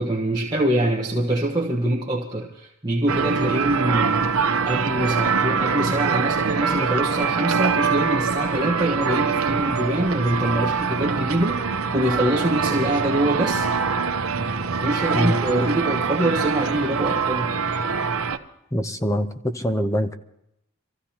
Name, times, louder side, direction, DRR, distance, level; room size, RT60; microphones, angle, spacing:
voice 1, 0.0-4.4 4.6-13.7 14.7-17.6, right 1 dB, 20° right, 1.3 m, -24 dB
sound 1, 3.1-18.4, right 5 dB, 80° right, 0.9 m, -24 dB
voice 2, 18.7-20.1, equal, 15° left, 0.7 m, -23 dB
25.5 x 15.0 x 2.9 m
head